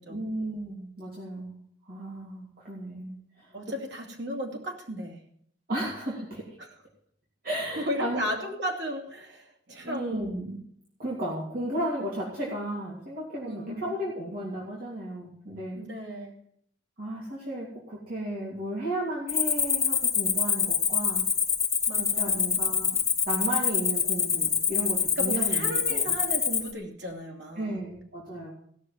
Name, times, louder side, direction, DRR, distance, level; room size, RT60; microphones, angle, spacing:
voice 1, 0.1-1.6 1.9-3.6 5.7-6.6 7.4-8.3 9.8-10.6 11.0-16.1 17.0-21.3 22.0-23.0 23.3-26.2 27.6-28.5, right 1 dB, 55° right, -4 dB, 3.0 m, -34 dB
voice 2, 3.5-5.2 6.6-6.7 7.8-10.3 13.4-13.9 15.7-16.3 21.9-22.6 25.2-27.8, equal, 80° right, 1 dB, 2.9 m, -35 dB
Cricket, 19.3-26.7, left 6 dB, 15° left, 1.5 m, -26 dB
16.5 x 6.6 x 7.4 m, 0.66 s
head